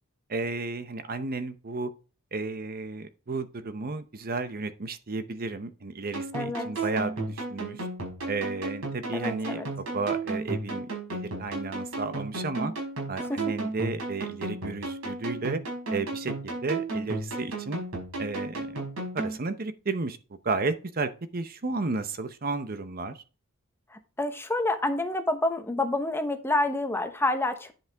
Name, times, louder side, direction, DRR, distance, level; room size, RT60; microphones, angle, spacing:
voice 1, 0.3-1.9 2.3-7.9 8.2-12.7 13.1-15.6 15.9-17.8 18.2-18.7 19.1-20.2 20.4-23.2, right 3 dB, 40° right, 0.7 m, -33 dB
sound 1, 6.1-19.4, right 2 dB, 65° right, 4.8 m, -34 dB
voice 2, 6.3-6.7 9.1-9.7 13.3-13.4 24.2-27.7, left 2 dB, 10° left, 0.9 m, -28 dB
10.5 x 5.8 x 3.4 m
head